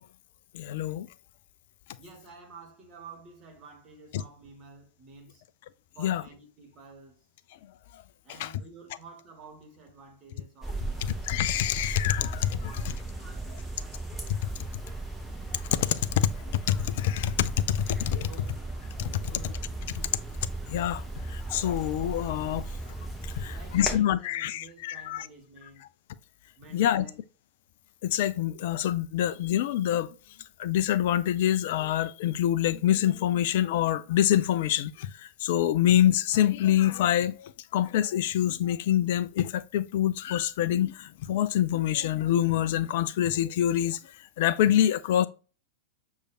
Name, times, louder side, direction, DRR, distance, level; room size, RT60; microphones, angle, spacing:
voice 1, 0.5-1.1 6.0-6.2 7.9-8.0 8.4-8.5 11.0-12.7 13.5-13.6 14.3-14.4 15.7-18.3 19.0-19.2 20.7-22.7 23.2-25.2 26.7-27.1 28.0-30.1 30.6-45.3, left 11 dB, 55° left, 0.3 m, -26 dB
voice 2, 2.0-5.4 5.9-7.2 8.2-11.1 12.4-14.0 18.3-18.8 19.2-19.7 23.4-25.9 26.6-27.2, right 3 dB, 30° right, 1.5 m, -51 dB
sound 1, 10.6-24.0, right 2 dB, 5° right, 0.8 m, -36 dB
6.3 x 2.4 x 2.5 m
figure-of-eight pair, 90°, 0 cm